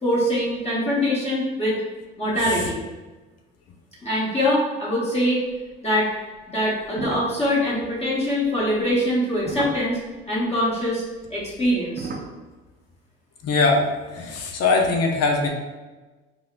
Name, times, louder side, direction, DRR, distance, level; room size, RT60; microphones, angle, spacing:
voice 1, 0.0-1.8 2.2-2.8 4.0-5.4 5.8-6.1 6.5-10.0 10.3-11.0 11.3-12.1, equal, 20° left, -7 dB, 1.1 m, -23 dB
sound 1, 6.8-10.2 11.2-12.3, right 3 dB, 35° right, 0.5 m, -34 dB
voice 2, 13.4-15.5, left 3 dB, 55° left, 2 dB, 0.7 m, -21 dB
4.8 x 2.1 x 2.5 m, 1.2 s
supercardioid pair, 70°, 29 cm